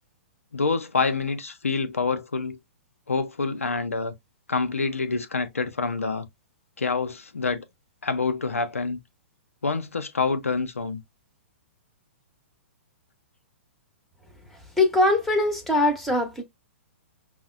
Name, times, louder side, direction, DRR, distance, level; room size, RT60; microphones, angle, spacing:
voice 1, 0.5-2.6 3.1-4.1 4.5-6.3 6.8-7.6 8.0-9.0 9.6-11.0, left 4 dB, 85° left, 0.5 m, -27 dB
voice 2, 14.8-16.4, left 2 dB, 5° left, 0.9 m, -21 dB
5.4 x 2.1 x 2.4 m
figure-of-eight pair, 115°, 7 cm